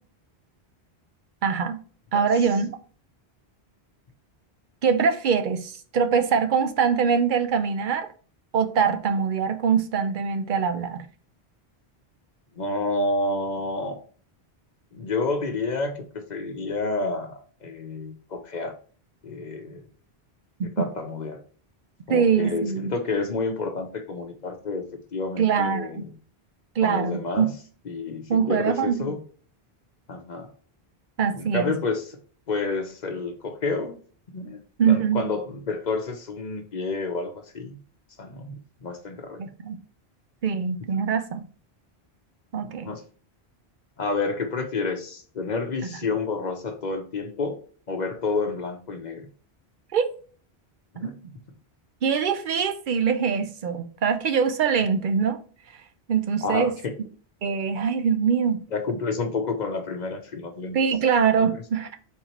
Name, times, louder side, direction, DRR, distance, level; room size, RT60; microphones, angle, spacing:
voice 1, 1.4-1.8 2.1-2.7 4.8-8.1 8.5-11.1 20.8-20.9 22.1-22.9 25.4-26.0 26.8-27.5 28.3-29.1 31.2-31.7 34.8-35.2 39.4-39.8 40.4-41.4 42.5-42.9 49.9-50.1 51.0-51.1 52.0-55.4 56.1-56.7 57.4-58.6 60.7-61.9, right 6 dB, 55° right, 0.7 m, -23 dB
voice 2, 12.6-14.0 14.9-18.7 19.2-19.8 20.8-21.4 22.1-24.8 25.1-26.1 26.8-27.5 27.9-29.2 30.1-30.5 31.4-32.2 32.5-34.0 34.3-37.8 38.2-38.5 38.8-39.4 42.6-43.0 44.0-47.6 47.9-49.2 51.0-51.1 56.4-56.9 58.7-60.8 61.4-61.5, left 3 dB, 50° left, 0.7 m, -29 dB
4.4 x 3.7 x 2.9 m
omnidirectional pair, 1.1 m